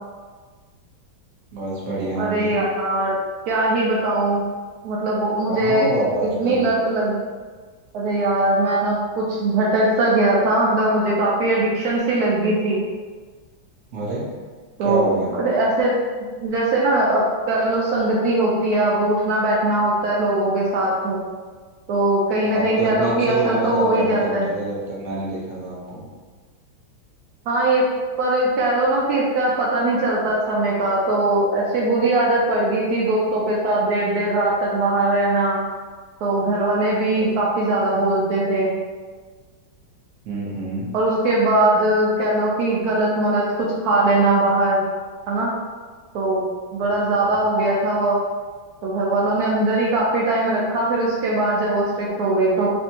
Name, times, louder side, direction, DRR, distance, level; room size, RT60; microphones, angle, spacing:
voice 1, 1.5-2.5 5.5-6.7 13.9-14.2 14.8-15.3 22.5-26.0 37.2-37.3 40.2-40.9 46.8-47.4, right 2 dB, 50° right, -5 dB, 0.9 m, -27 dB
voice 2, 2.2-3.1 3.5-4.4 4.8-5.9 6.4-7.1 7.9-12.8 14.8-16.0 16.4-21.2 21.9-24.5 27.5-27.9 28.2-35.6 36.2-38.7 40.9-44.8 45.3-45.5 46.1-46.4 46.7-48.2 48.8-52.7, right 2 dB, 85° right, -4 dB, 0.8 m, -20 dB
4.3 x 2.6 x 2.8 m, 1.4 s
omnidirectional pair, 2.3 m